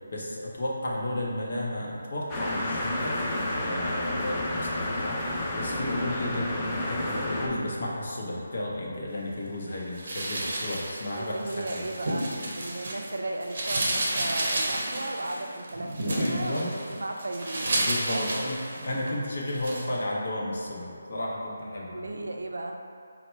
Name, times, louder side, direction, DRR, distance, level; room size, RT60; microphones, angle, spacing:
voice 1, 0.1-11.8 16.1-16.7 17.8-22.0, left 1 dB, 50° left, -3 dB, 0.7 m, -33 dB
sound 1, 2.3-7.5, left 1 dB, 15° left, 0.3 m, -30 dB
sound 2, 10.0-13.1 13.4-19.1 19.5-19.9, right 1 dB, 40° right, 0.7 m, -31 dB
voice 2, 11.2-17.7 18.1-18.4 21.9-22.8, right 2 dB, 80° right, 3 dB, 0.4 m, -35 dB
4.2 x 2.1 x 4.3 m, 2.4 s
hypercardioid pair, 175°, 0 cm